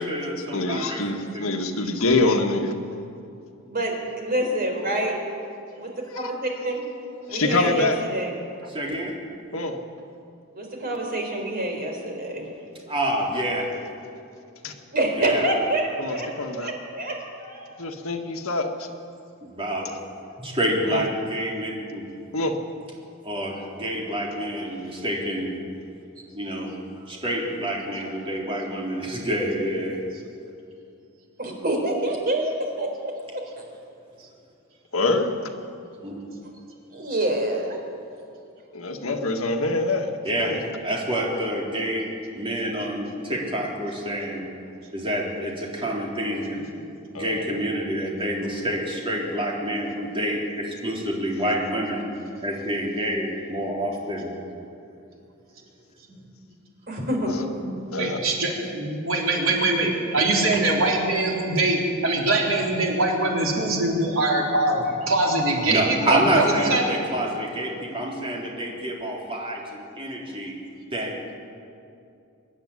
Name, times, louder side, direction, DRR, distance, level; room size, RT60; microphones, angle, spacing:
voice 1, 0.0-1.0 1.3-1.5 8.7-9.1 12.9-13.7 15.2-15.4 19.4-19.9 20.4-22.0 23.2-25.5 26.3-26.7 27.1-30.0 36.0-36.2 40.2-40.5 40.8-42.1 42.3-44.5 44.9-46.6 47.1-52.1 52.4-54.3 56.1-56.2 57.6-57.7 65.7-70.6 70.9-71.3, right 1 dB, 25° right, -2 dB, 3.8 m, -27 dB
voice 2, 0.5-2.7 6.1-6.3 7.3-8.0 9.5-9.8 14.6-14.7 16.0-16.7 17.8-18.9 20.9-21.0 22.3-22.6 34.9-35.3 38.7-40.1 40.4-40.6 47.1-47.4 57.3-57.4 57.9-58.2, left 2 dB, 75° left, 4 dB, 1.7 m, -25 dB
voice 3, 3.7-5.2 5.8-6.8 7.3-8.3 10.5-12.5 14.9-16.3 16.5-17.9 31.4-33.1 36.9-37.8 56.9-57.3, right 1 dB, 45° right, 1 dB, 4.1 m, -27 dB
voice 4, 58.0-66.8, right 2 dB, 65° right, -1 dB, 4.0 m, -23 dB
24.5 x 11.0 x 9.8 m, 2.6 s
head